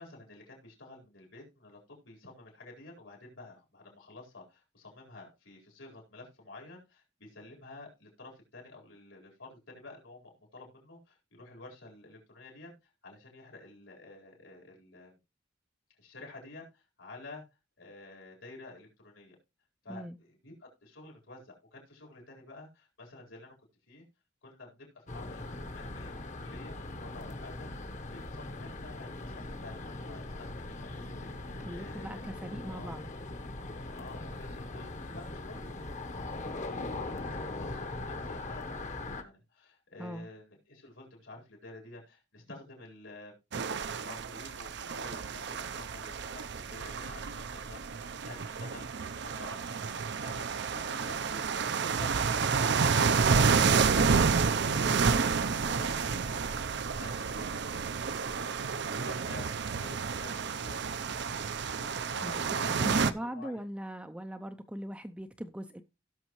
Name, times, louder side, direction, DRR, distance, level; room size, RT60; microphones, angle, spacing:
voice 1, 0.0-12.7 13.0-15.2 16.0-17.4 17.8-19.4 19.8-23.5 23.9-24.0 24.4-27.7 28.1-32.9 33.9-43.4 43.9-58.0 58.3-59.9 60.2-60.8 61.7-63.6, left 2 dB, 80° left, 4.3 m, -50 dB
sound 1, 25.1-39.2, left 2 dB, 40° left, 1.0 m, -40 dB
voice 2, 31.7-33.1 40.0-40.3 62.2-62.3 62.7-65.8, equal, 5° right, 0.5 m, -40 dB
sound 2, 43.5-63.1, right 5 dB, 60° right, 0.6 m, -30 dB
17.0 x 6.2 x 3.0 m
head